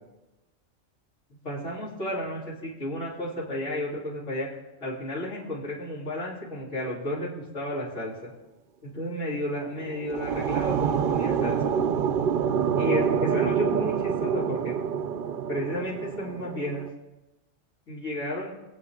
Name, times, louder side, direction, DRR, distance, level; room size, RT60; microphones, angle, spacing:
voice 1, 1.4-4.5 4.8-8.3 8.8-11.6 12.8-14.8 15.5-16.9 17.9-18.5, left 1 dB, 75° left, -8 dB, 3.8 m, -32 dB
sound 1, 9.7-16.9, right 7 dB, 55° right, 0.6 m, -27 dB
24.5 x 8.4 x 3.7 m, 1.1 s
omnidirectional pair, 1.3 m